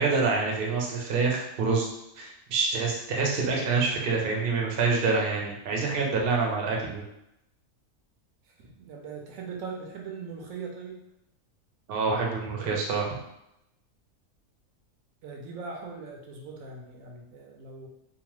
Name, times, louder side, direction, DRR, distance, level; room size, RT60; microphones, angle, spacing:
voice 1, 0.0-1.9 2.2-7.0 11.9-13.2, right 4 dB, 55° right, -1 dB, 0.7 m, -26 dB
voice 2, 8.6-11.0 12.6-12.8 15.2-17.9, right 4 dB, 80° right, 0 dB, 1.0 m, -40 dB
2.8 x 2.1 x 2.9 m, 0.82 s
omnidirectional pair, 1.4 m